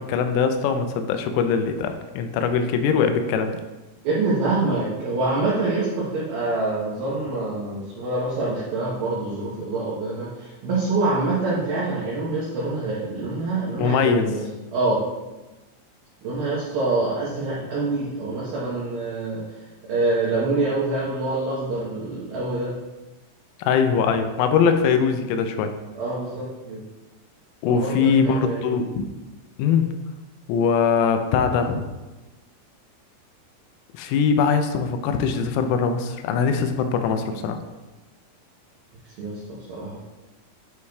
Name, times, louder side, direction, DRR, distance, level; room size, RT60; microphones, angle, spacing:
voice 1, 0.0-3.6 13.8-14.3 23.6-25.7 27.6-29.1 29.6-29.9 30.5-31.9 33.9-37.6, left 6 dB, 85° left, 7 dB, 3.2 m, -22 dB
voice 2, 4.0-14.4 14.7-15.0 16.2-19.4 19.9-22.8 26.0-26.8 27.7-28.8 39.2-40.0, right 2 dB, 85° right, -6 dB, 2.1 m, -26 dB
9.6 x 4.8 x 2.3 m, 1.1 s
omnidirectional pair, 5.8 m